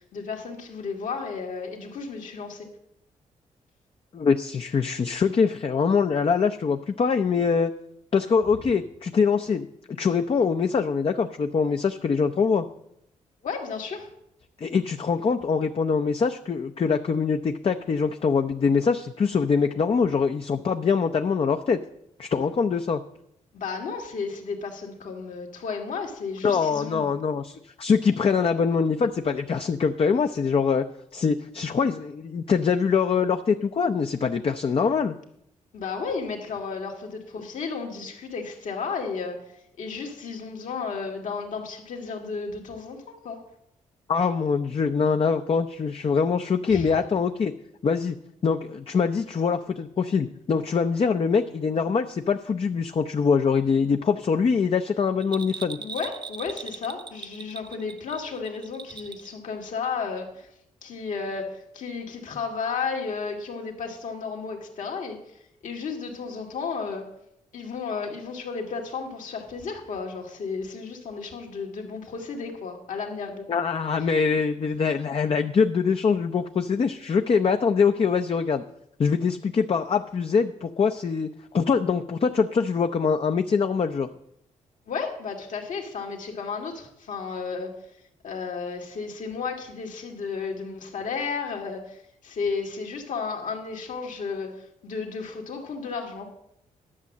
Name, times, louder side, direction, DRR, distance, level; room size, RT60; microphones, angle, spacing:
voice 1, 0.0-2.7 13.4-14.1 23.5-27.1 28.2-28.5 35.7-39.4 39.8-43.4 46.7-46.9 55.8-60.5 60.8-67.1 67.5-73.5 84.9-87.7 88.2-96.3, left 5 dB, 70° left, 1 dB, 2.2 m, -33 dB
voice 2, 4.1-7.7 8.1-12.6 14.6-21.8 22.2-23.0 26.4-30.8 31.1-35.1 44.1-47.5 47.8-48.2 48.4-55.8 73.5-78.6 79.0-84.1, left 5 dB, 45° left, 6 dB, 0.6 m, -23 dB
Bell, 55.2-59.3 59.6-59.7, right 5 dB, 35° right, 0.8 m, -39 dB
11.0 x 6.2 x 7.3 m, 0.76 s
cardioid pair, 65°, 14 cm